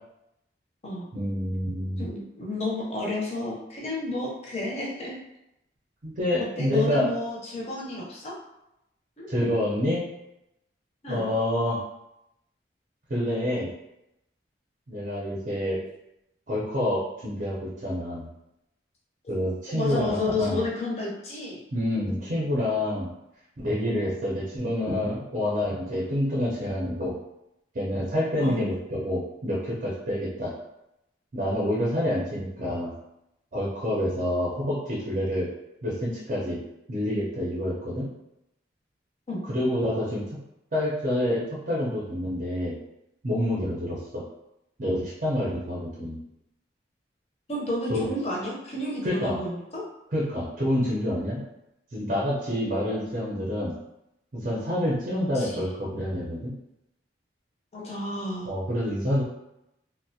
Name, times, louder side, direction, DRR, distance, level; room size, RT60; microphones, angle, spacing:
voice 1, 1.1-2.1 6.0-7.1 9.3-10.0 11.1-11.8 13.1-13.7 14.9-15.8 16.5-18.3 19.3-20.6 21.7-23.1 23.6-27.1 27.7-30.5 31.3-32.9 33.5-35.5 35.8-36.6 36.9-38.1 39.4-40.2 40.7-42.8 43.2-44.2 44.8-46.2 47.9-48.1 49.0-49.4 50.1-51.5 51.9-53.7 54.3-56.5 58.5-59.2, left 1 dB, 45° right, -6 dB, 0.5 m, -27 dB
voice 2, 2.0-5.1 6.6-8.3 9.2-9.3 11.0-11.2 19.2-19.3 19.7-21.6 28.4-28.6 39.3-39.4 47.5-49.8 55.3-55.6 57.7-58.5, left 2 dB, 35° left, -4 dB, 0.5 m, -31 dB
2.3 x 2.0 x 2.6 m, 0.86 s
head